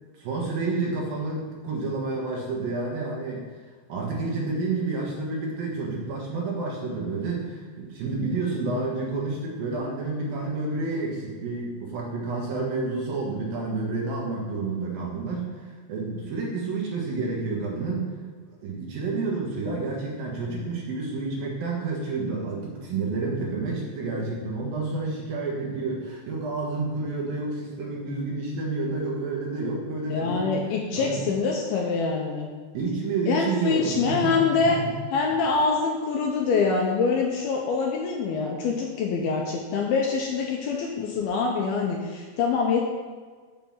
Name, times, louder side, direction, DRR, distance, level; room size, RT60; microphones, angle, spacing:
voice 1, 0.1-3.4 3.9-18.1 18.6-30.6 30.9-31.3 32.7-34.9, right 3 dB, 65° right, -2 dB, 2.7 m, -29 dB
voice 2, 30.1-32.5 33.3-34.8 35.1-42.8, left 5 dB, 75° left, 0 dB, 2.3 m, -25 dB
7.7 x 5.9 x 7.1 m, 1.5 s
omnidirectional pair, 5.1 m